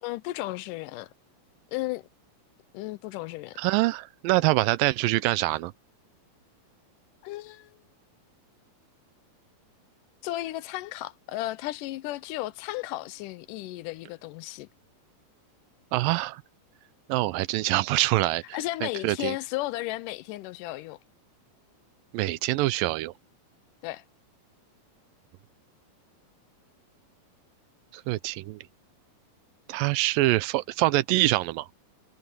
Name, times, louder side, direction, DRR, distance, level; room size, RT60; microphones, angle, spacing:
voice 1, 0.0-1.1 1.7-2.0 2.7-3.6 7.2-7.8 10.2-14.7 18.5-21.0 23.8-24.0, left 17 dB, 80° left, 2.1 m, -34 dB
voice 2, 3.6-5.7 15.9-16.4 17.1-18.4 18.8-19.3 22.1-23.1 28.1-28.6 29.7-31.7, right 18 dB, 85° right, 2.3 m, -25 dB
omnidirectional pair, 3.9 m